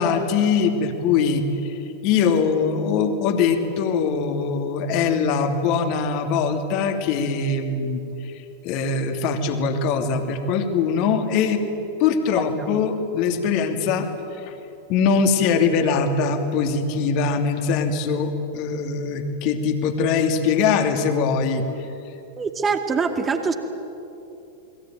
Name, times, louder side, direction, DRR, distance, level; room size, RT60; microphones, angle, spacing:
voice 1, 0.0-11.6 12.0-14.1 14.4-14.5 14.9-21.6, left 5 dB, 45° left, 6 dB, 2.8 m, -22 dB
voice 2, 22.4-23.5, right 5 dB, 20° right, 5 dB, 2.3 m, -23 dB
29.0 x 21.5 x 9.2 m, 2.9 s
figure-of-eight pair, 90°, 0 cm